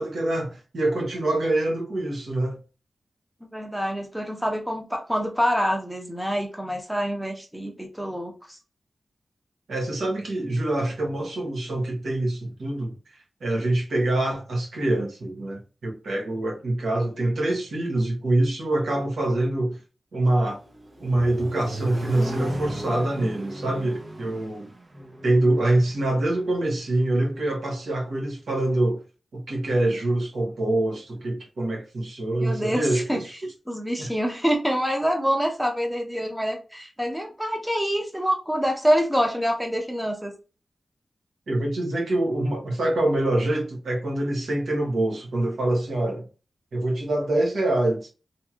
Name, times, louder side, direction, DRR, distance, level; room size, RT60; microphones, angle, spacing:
voice 1, 0.0-2.6 9.7-13.0 13.4-19.8 20.1-20.6 21.0-24.7 25.2-29.0 29.3-33.2 34.0-34.1 41.5-46.2 46.7-48.1, right 1 dB, 85° right, 1.1 m, -25 dB
voice 2, 3.4-8.3 32.4-33.2 33.7-40.3, equal, 5° right, 0.8 m, -26 dB
Accelerating revving vroom, 20.5-26.5, right 1 dB, 40° right, 0.6 m, -35 dB
2.9 x 2.7 x 2.3 m
cardioid pair, 70°, 0 cm